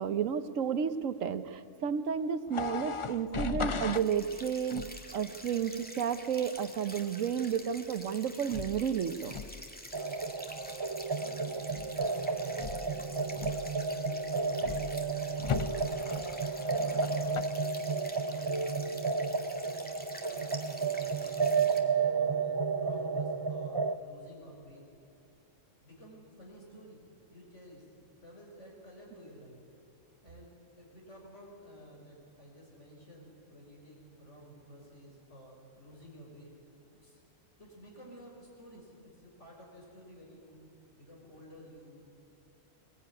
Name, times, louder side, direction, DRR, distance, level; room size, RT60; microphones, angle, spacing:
voice 1, 0.0-4.8 5.1-9.4, right 8 dB, 80° right, 12 dB, 1.2 m, -32 dB
sound 1, 2.5-4.1 4.7-5.1 8.5-8.9 9.3-9.6 11.7-12.1 12.6-13.0 13.4-13.9 14.6-15.0 15.4-17.4, left 5 dB, 40° left, 0.5 m, -37 dB
sound 2, 3.9-21.8, equal, 5° left, 2.0 m, -48 dB
sound 3, 9.9-24.0, right 4 dB, 30° right, 0.5 m, -32 dB
voice 2, 11.2-13.3 13.8-16.0 16.7-17.7 18.2-19.3 20.3-21.5 21.8-24.9 25.8-27.0 27.3-27.9 28.2-29.5 30.2-36.5 37.0-37.2 37.6-40.6 41.0-42.1, equal, 65° left, -1 dB, 6.0 m, -53 dB
21.5 x 21.5 x 9.8 m, 2.6 s
omnidirectional pair, 1.3 m